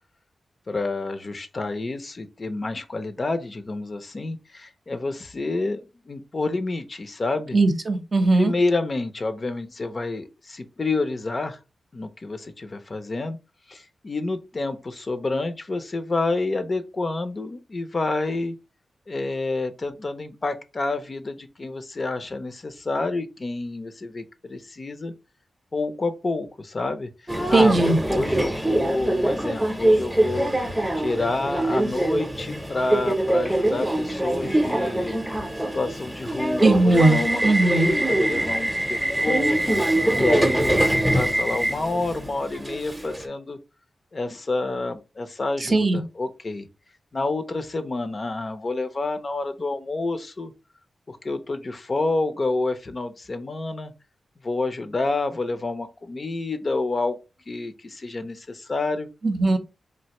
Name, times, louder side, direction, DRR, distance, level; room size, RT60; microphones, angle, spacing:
voice 1, 0.7-7.6 8.4-11.6 11.9-13.4 13.7-18.5 19.1-25.1 25.7-27.1 27.5-35.2 35.7-43.6 44.1-46.7 47.1-50.5 51.1-53.9 54.4-57.2 57.5-59.1, left 3 dB, 45° left, 0.5 m, -29 dB
voice 2, 7.5-8.5 27.5-28.0 36.6-37.9 45.6-46.0 59.2-59.6, right 2 dB, 50° right, 0.6 m, -19 dB
Subway metro underground, 27.3-43.2, right 1 dB, 10° right, 0.7 m, -23 dB
3.2 x 2.5 x 2.9 m
cardioid pair, 60°, 0 cm